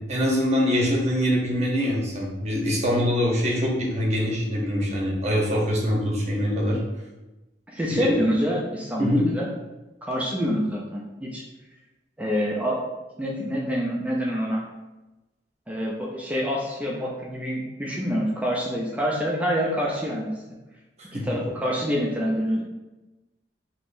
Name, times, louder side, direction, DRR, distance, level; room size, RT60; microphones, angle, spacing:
voice 1, 0.1-6.8 7.9-8.2 9.0-9.3 21.1-21.2, equal, 40° right, -2 dB, 0.8 m, -23 dB
voice 2, 7.7-9.5 10.0-11.4 12.2-12.8 13.2-14.6 15.7-20.3 21.1-22.6, equal, 10° right, -3 dB, 0.4 m, -26 dB
3.6 x 2.9 x 2.6 m, 1.1 s
head